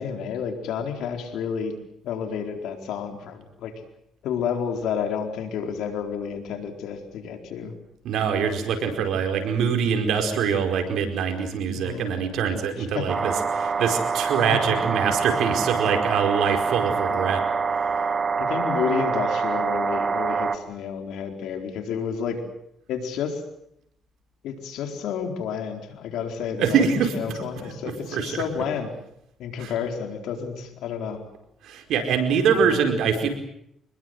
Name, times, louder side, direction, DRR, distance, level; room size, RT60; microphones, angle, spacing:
voice 1, 0.0-1.7 2.0-3.7 4.2-7.7 11.7-12.1 12.8-13.1 13.8-13.9 14.5-14.8 17.1-17.3 18.4-22.4 22.9-23.4 24.4-28.9 29.4-31.2 32.4-32.6, left 7 dB, 85° left, 5 dB, 4.2 m, -30 dB
voice 2, 8.0-17.4 26.6-27.1 27.8-28.6 29.6-29.7 31.6-33.3, right 6 dB, 80° right, 4 dB, 4.9 m, -24 dB
sound 1, 13.1-20.6, right 5 dB, 40° right, 2.2 m, -25 dB
26.0 x 21.0 x 7.9 m, 0.76 s
cardioid pair, 90°, 0 cm